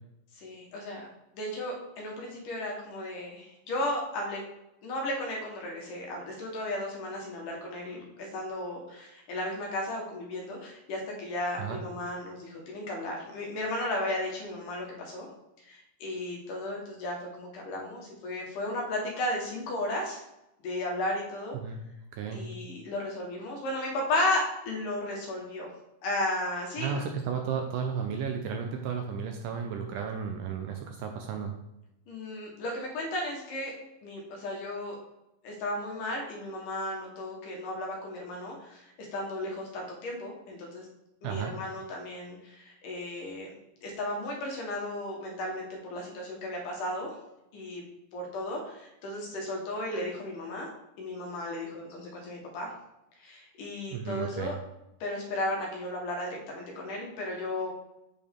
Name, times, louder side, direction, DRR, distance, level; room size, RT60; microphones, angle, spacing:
voice 1, 0.4-1.1 1.3-4.4 4.8-15.3 15.6-20.2 20.6-21.6 22.3-25.7 26.0-27.0 32.1-33.7 34.0-35.0 35.4-40.9 41.2-43.5 43.8-47.2 47.5-47.8 48.1-50.7 51.0-52.7 53.2-54.5 55.0-57.7, left 1 dB, 70° left, -1 dB, 2.7 m, -34 dB
voice 2, 22.1-22.5 26.8-31.5 41.2-41.5 53.9-54.6, right 6 dB, 80° right, 3 dB, 2.0 m, -33 dB
8.3 x 4.3 x 3.6 m, 0.88 s
omnidirectional pair, 4.1 m